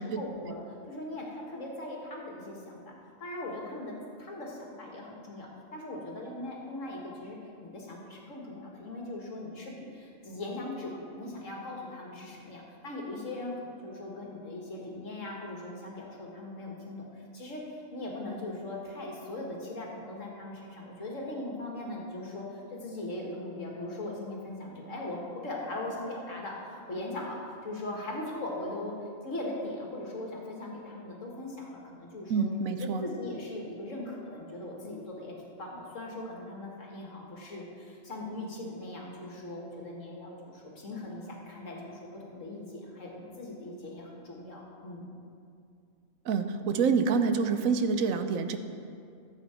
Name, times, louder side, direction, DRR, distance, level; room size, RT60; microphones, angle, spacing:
voice 1, 0.2-2.9 3.2-27.4 27.6-32.4 32.8-45.1, left 2 dB, 65° left, -2 dB, 2.1 m, -40 dB
voice 2, 32.3-33.0 46.3-48.6, right 5 dB, 80° right, 9 dB, 1.1 m, -27 dB
14.5 x 7.9 x 4.4 m, 2.4 s
omnidirectional pair, 1.4 m